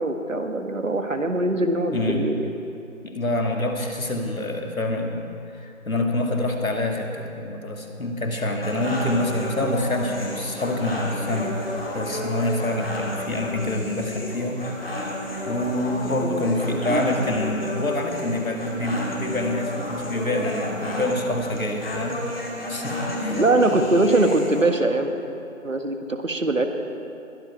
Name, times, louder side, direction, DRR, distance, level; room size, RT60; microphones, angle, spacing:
voice 1, 0.0-2.4 16.0-17.1 23.3-25.1 25.6-26.7, right 2 dB, 65° right, 6 dB, 1.8 m, -22 dB
voice 2, 1.9-2.3 3.0-5.2 5.5-11.6 11.9-14.6 15.0-15.1 15.5-22.2 22.7-23.4 23.7-23.8, left 1 dB, 80° left, 2 dB, 2.4 m, -26 dB
sound 1, 8.6-24.6, left 1 dB, 45° left, 2.9 m, -32 dB
21.5 x 12.0 x 4.5 m, 2.7 s
figure-of-eight pair, 165°, 41 cm